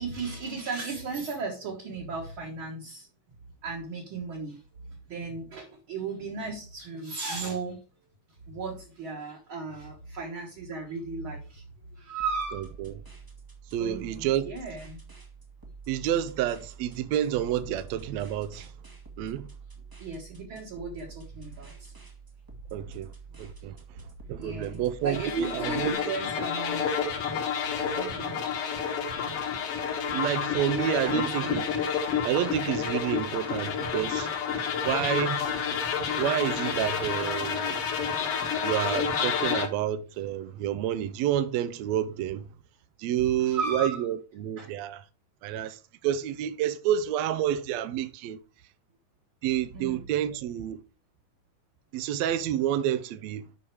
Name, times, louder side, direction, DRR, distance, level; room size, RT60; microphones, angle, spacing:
voice 1, 0.0-3.1 3.6-4.6 4.9-7.8 8.5-11.6 11.9-12.7 13.8-15.0 20.0-21.9 24.4-26.8 27.6-28.4 31.0-31.6 33.9-34.0 35.4-35.5 43.4-44.0 44.6-44.7 49.7-50.1, right 4 dB, 50° right, 1.7 m, -36 dB
sound 1, 12.2-25.9, right 5 dB, 20° right, 0.6 m, -47 dB
voice 2, 12.5-12.9 13.7-14.5 15.9-18.7 19.2-19.5 22.7-23.1 23.4-26.0 30.1-31.6 32.2-34.3 34.8-35.4 36.2-37.9 38.6-42.5 43.0-45.1 45.4-48.4 49.4-50.8 51.9-53.5, right 10 dB, 80° right, 1.6 m, -29 dB
sound 2, 25.1-39.7, left 7 dB, 55° left, 2.0 m, -29 dB
8.4 x 5.5 x 4.6 m
omnidirectional pair, 3.8 m